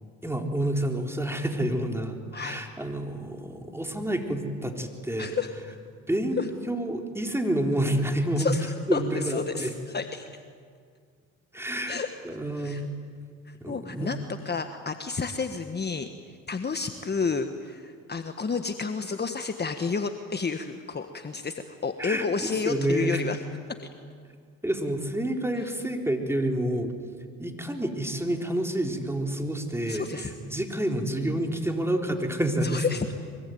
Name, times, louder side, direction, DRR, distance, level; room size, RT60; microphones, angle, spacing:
voice 1, 0.2-5.4 6.1-6.4 6.7-8.5 8.9-9.7 11.5-12.0 12.2-12.9 13.6-14.1 22.0-23.2 24.6-26.9 27.4-32.9, right 1 dB, 5° right, 3 dB, 4.1 m, -28 dB
voice 2, 2.3-2.6 5.2-5.5 6.4-6.5 8.4-10.2 11.9-12.1 12.6-12.8 13.4-14.2 14.4-16.1 16.5-23.4 29.9-30.3 32.6-33.1, left 5 dB, 30° left, 7 dB, 1.5 m, -30 dB
24.5 x 23.5 x 9.5 m, 2.1 s
supercardioid pair, 75°, 35 cm